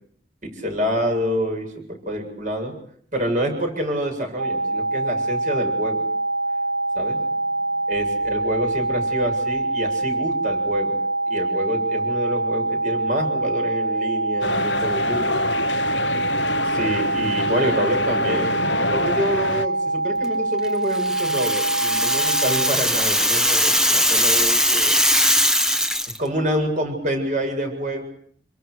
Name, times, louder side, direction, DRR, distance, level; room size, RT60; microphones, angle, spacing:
voice 1, 0.4-2.7 3.1-6.0 6.9-7.2 7.9-11.0 11.3-15.4 15.7-15.9 16.6-24.9 26.2-28.0, equal, 45° right, 4 dB, 7.7 m, -27 dB
sound 1, 4.4-22.7, right 2 dB, 60° right, 1.2 m, -24 dB
sound 2, 14.4-19.7, left 3 dB, 85° left, 1.0 m, -27 dB
Rattle (instrument), 20.9-26.2, equal, 5° right, 1.3 m, -20 dB
28.5 x 26.0 x 6.6 m, 0.62 s
head